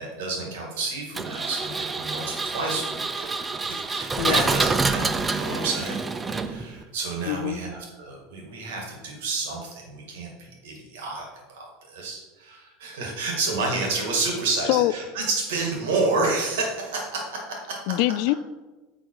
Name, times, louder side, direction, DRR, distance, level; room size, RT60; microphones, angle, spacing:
voice 1, 0.0-6.0 6.4-17.8, right 3 dB, 80° right, 0 dB, 2.2 m, -30 dB
Engine, 1.1-6.8, right 3 dB, 20° right, 0.5 m, -27 dB
voice 2, 4.2-4.5 7.3-7.6 14.7-14.9 17.9-18.3, left 16 dB, 65° left, 17 dB, 0.3 m, -23 dB
8.4 x 3.9 x 4.8 m, 1.2 s
hypercardioid pair, 95°, 0 cm